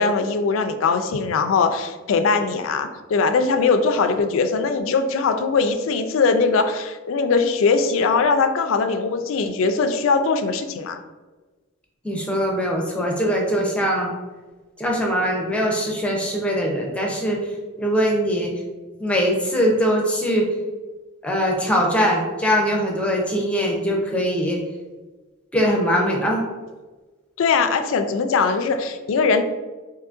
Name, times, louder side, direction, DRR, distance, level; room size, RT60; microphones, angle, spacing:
voice 1, 0.0-11.0 27.4-29.4, left 4 dB, 70° left, 7 dB, 0.3 m, -21 dB
voice 2, 12.0-14.1 14.8-17.4 17.8-18.5 19.0-20.5 21.2-24.6 25.5-26.4, equal, 5° left, -1 dB, 0.5 m, -21 dB
3.7 x 2.9 x 2.4 m, 1.3 s
head